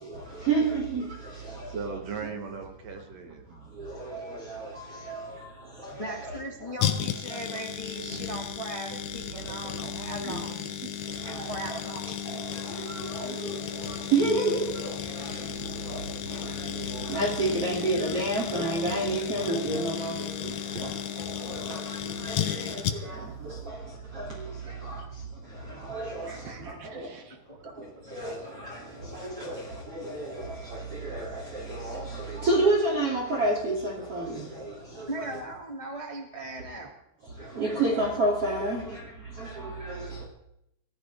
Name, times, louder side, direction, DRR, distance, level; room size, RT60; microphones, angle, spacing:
voice 1, 0.1-2.0 3.8-5.3 5.8-6.7 7.3-7.6 10.2-10.4 11.2-15.5 15.8-20.5 20.8-23.8 24.1-24.3 24.8-25.0 25.8-27.1 27.8-27.9 28.1-35.4 37.5-39.0 39.4-40.2, right 2 dB, 35° right, 3.4 m, -31 dB
voice 2, 1.7-3.5 10.2-10.3 20.7-21.1 26.3-27.4, right 5 dB, 55° right, 2.0 m, -39 dB
voice 3, 6.0-10.7 11.5-12.0 15.9-16.0 20.5-20.6 24.6-24.7 27.5-27.6 29.0-29.1 35.1-36.9, right 1 dB, 25° left, 0.7 m, -38 dB
sound 1, 6.8-23.3 23.6-23.7, left 10 dB, 80° left, 1.7 m, -34 dB
24.5 x 14.0 x 3.6 m
omnidirectional pair, 4.8 m